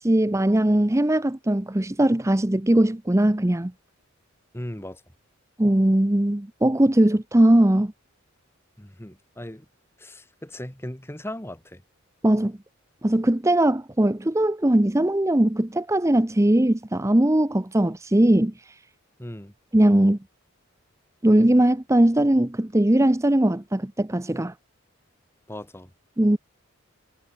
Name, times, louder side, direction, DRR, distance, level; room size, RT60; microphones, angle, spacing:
voice 1, 0.0-3.7 5.6-7.9 12.2-12.6 13.0-18.7 19.7-20.2 21.2-24.5 26.2-26.4, right 1 dB, 15° right, 0.7 m, -20 dB
voice 2, 4.5-5.0 8.8-9.6 10.0-11.8 19.2-19.5 25.5-25.9, left 1 dB, 10° left, 1.6 m, -37 dB
head